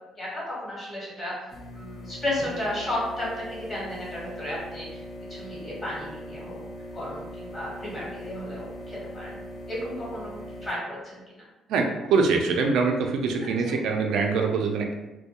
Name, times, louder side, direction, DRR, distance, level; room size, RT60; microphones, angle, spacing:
voice 1, 0.2-5.0 5.3-6.6 6.9-9.4 9.7-10.3 10.6-11.5 13.6-13.8, left 1 dB, 30° left, -6 dB, 1.1 m, -33 dB
sound 1, 1.5-10.7, equal, 60° left, 0.7 m, -40 dB
voice 2, 11.7-14.9, right 4 dB, 75° right, 2 dB, 0.3 m, -24 dB
2.2 x 2.1 x 2.8 m, 1.0 s
cardioid pair, 115°, 0 cm